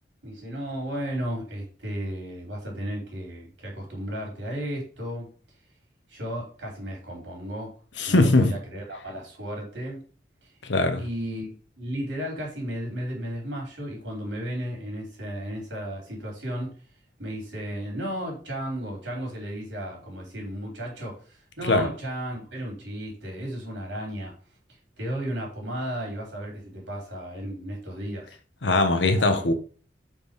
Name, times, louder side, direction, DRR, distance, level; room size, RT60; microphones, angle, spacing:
voice 1, 0.2-5.3 6.1-7.8 8.1-10.0 11.0-16.7 17.2-24.3 25.0-28.4 29.2-29.3, equal, 80° right, 3.4 m, -34 dB
voice 2, 8.0-8.5 10.6-11.0 21.6-21.9 28.6-29.5, left 2 dB, 80° left, 1.0 m, -21 dB
5.5 x 4.6 x 5.1 m
head